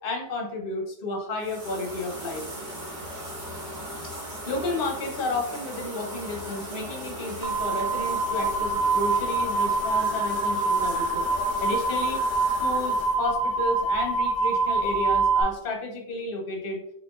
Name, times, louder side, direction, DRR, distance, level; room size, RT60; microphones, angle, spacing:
voice 1, 0.0-2.5 4.1-16.8, left 2 dB, 50° left, 1 dB, 0.7 m, -32 dB
sound 1, 1.4-13.2, equal, 45° right, 1.4 m, -38 dB
sound 2, 7.4-15.4, right 3 dB, 65° right, 1.0 m, -25 dB
sound 3, 9.4-13.8, right 1 dB, 25° right, 1.3 m, -44 dB
4.1 x 3.5 x 2.3 m, 0.79 s
omnidirectional pair, 1.7 m